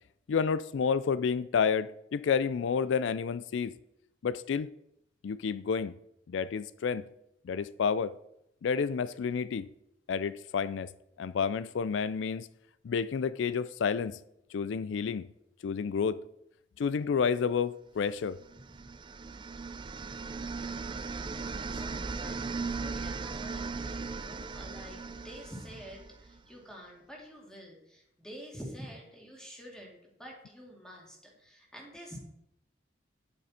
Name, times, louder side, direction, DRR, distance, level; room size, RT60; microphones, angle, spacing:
voice 1, 0.3-3.8 4.2-4.7 5.2-5.9 6.3-7.1 7.4-8.2 8.6-9.7 10.1-10.9 11.2-12.5 12.8-14.2 14.5-15.3 15.6-16.2 16.8-18.4, left 6 dB, 80° left, 0.4 m, -30 dB
sound 1, 18.4-26.4, right 4 dB, 25° right, 0.4 m, -38 dB
voice 2, 20.3-32.2, equal, 5° left, 2.5 m, -48 dB
9.4 x 8.3 x 4.3 m
head